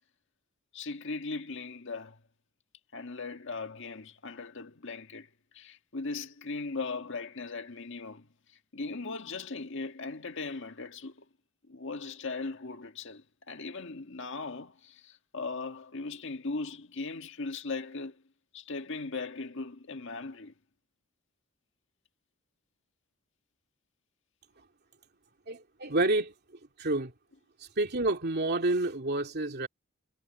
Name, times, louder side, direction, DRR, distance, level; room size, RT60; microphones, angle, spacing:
voice 1, 0.7-2.2 2.9-8.3 8.7-11.2 11.7-18.2 18.5-20.5, left 3 dB, 65° left, 1.7 m, -38 dB
voice 2, 25.5-26.3 26.8-27.1 27.8-29.7, right 2 dB, 55° right, 2.6 m, -28 dB
head